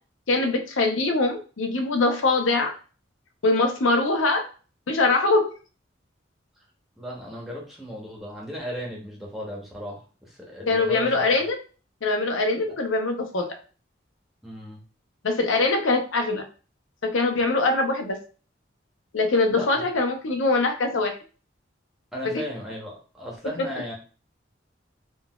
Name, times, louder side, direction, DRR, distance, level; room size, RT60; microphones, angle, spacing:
voice 1, 0.3-2.7 3.4-4.4 4.9-5.5 10.7-11.6 12.0-13.5 15.2-16.4 17.0-18.2 19.1-21.2 22.3-22.4, left 3 dB, 90° left, 5 dB, 0.7 m, -23 dB
voice 2, 6.9-11.2 12.6-12.7 13.4-13.5 14.4-14.8 19.5-19.8 22.1-23.9, equal, ahead, -3 dB, 0.8 m, -36 dB
3.8 x 2.3 x 2.3 m, 0.36 s
head